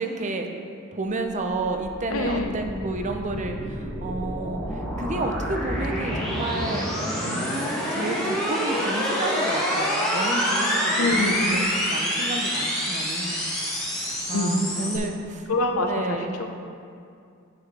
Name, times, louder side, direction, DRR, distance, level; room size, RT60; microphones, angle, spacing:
voice 1, 0.0-7.0 7.9-13.5 13.9-15.5 15.8-16.4, right 2 dB, 35° right, 4 dB, 0.6 m, -31 dB
sound 1, 1.5-15.0, equal, ahead, 1.6 m, -27 dB
voice 2, 2.1-2.7 3.0-3.5 5.8-6.3 7.2-7.6 11.0-11.6 14.3-15.0 15.5-16.3, left 2 dB, 85° left, 3 dB, 0.8 m, -27 dB
9.4 x 7.0 x 3.3 m, 2.4 s
head